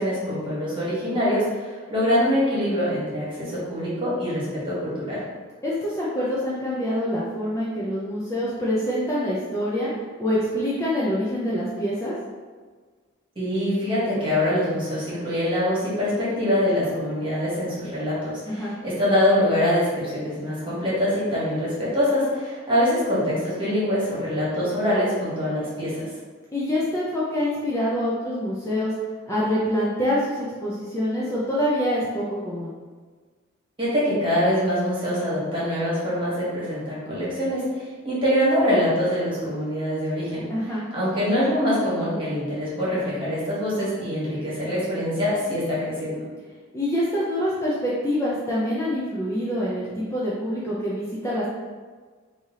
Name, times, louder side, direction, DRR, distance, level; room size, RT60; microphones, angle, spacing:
voice 1, 0.0-5.2 13.3-26.0 33.8-40.4 40.9-46.2, equal, 25° right, -9 dB, 1.4 m, -24 dB
voice 2, 5.6-9.9 10.2-12.1 18.5-18.7 26.5-28.9 29.3-32.7 40.5-40.8 46.7-51.5, equal, 15° left, -7 dB, 0.4 m, -25 dB
3.3 x 2.7 x 3.6 m, 1.5 s
head